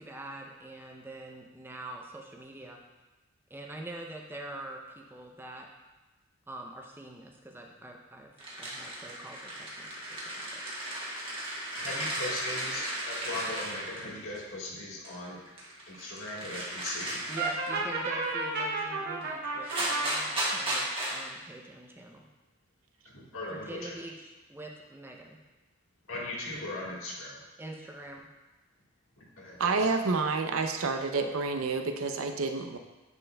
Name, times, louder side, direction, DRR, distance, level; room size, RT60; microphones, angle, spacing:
voice 1, 0.0-2.8 3.5-5.7 6.5-8.3 8.6-10.6 17.3-22.3 23.5-25.4 27.6-28.3, right 1 dB, 10° right, 1 dB, 0.5 m, -45 dB
sound 1, 8.4-14.4 15.0-17.8 19.2-19.3 19.6-21.3, right 1 dB, 25° right, 1.3 m, -35 dB
voice 2, 11.8-15.4 15.9-17.2 23.0-23.9 26.1-27.4 29.2-29.9, left 2 dB, 80° left, -4 dB, 1.5 m, -38 dB
Brass instrument, 17.4-20.1, right 3 dB, 50° right, 0.8 m, -32 dB
voice 3, 29.6-32.8, right 4 dB, 80° right, 6 dB, 0.5 m, -29 dB
9.7 x 4.4 x 2.2 m, 1.1 s
head